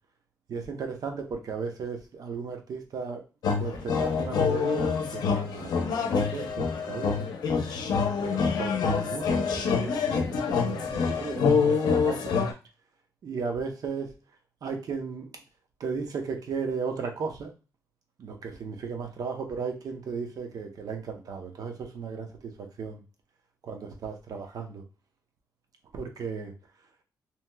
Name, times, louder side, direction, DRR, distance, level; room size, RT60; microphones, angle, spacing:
voice 1, 0.5-3.2 3.6-7.3 8.2-12.3 13.2-14.1 14.6-15.3 15.8-17.5 18.2-23.0 23.6-24.8 25.9-26.5, right 5 dB, 60° right, 4 dB, 0.7 m, -35 dB
sound 1, 3.4-12.5, left 5 dB, 80° left, 0.6 m, -26 dB
2.9 x 2.9 x 2.2 m, 0.31 s
cardioid pair, 120°, 7 cm